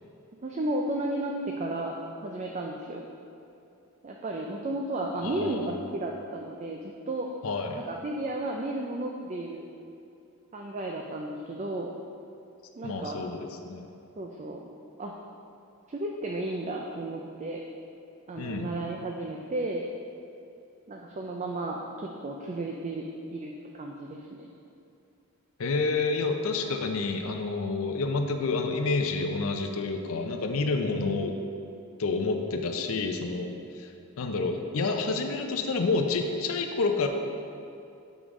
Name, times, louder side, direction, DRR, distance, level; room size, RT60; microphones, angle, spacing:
voice 1, 0.4-3.1 4.0-6.8 7.1-7.3 7.9-9.6 10.5-11.9 12.8-13.2 14.2-14.6 15.0-15.1 15.9-17.6 18.3-19.9 20.9-23.0 23.3-24.5, right 2 dB, 30° right, 0 dB, 0.4 m, -33 dB
voice 2, 5.2-5.8 7.4-7.8 12.8-13.9 18.4-18.8 25.6-31.3 32.0-37.1, left 3 dB, 65° left, 4 dB, 0.5 m, -29 dB
7.1 x 5.0 x 3.6 m, 2.7 s
head